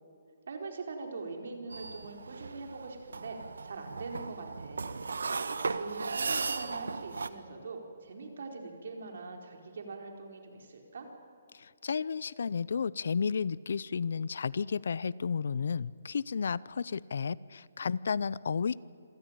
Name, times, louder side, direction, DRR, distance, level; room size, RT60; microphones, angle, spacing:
voice 1, 0.5-3.4 3.6-4.9 5.2-11.1, right 3 dB, 70° right, 3 dB, 4.5 m, -43 dB
sound 1, 1.7-7.3, right 4 dB, 85° right, 1.2 m, -36 dB
voice 2, 11.5-18.8, left 6 dB, 70° left, 21 dB, 0.6 m, -32 dB
27.0 x 16.0 x 9.0 m, 2.4 s
hypercardioid pair, 155°, 0 cm